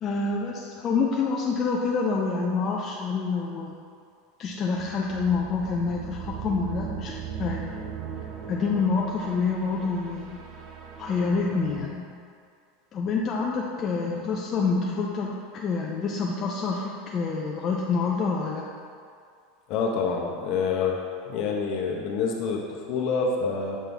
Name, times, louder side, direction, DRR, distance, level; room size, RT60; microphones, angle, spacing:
voice 1, 0.0-3.7 4.4-7.8 8.5-10.4 11.0-12.1 12.9-18.6, left 4 dB, 35° left, -2 dB, 0.5 m, -27 dB
sound 1, 4.7-11.9, right 7 dB, 45° right, 0.6 m, -38 dB
voice 2, 19.7-21.0 21.3-23.8, left 5 dB, 55° left, 0 dB, 0.9 m, -27 dB
7.4 x 3.8 x 3.4 m, 2.3 s
supercardioid pair, 120°, 0 cm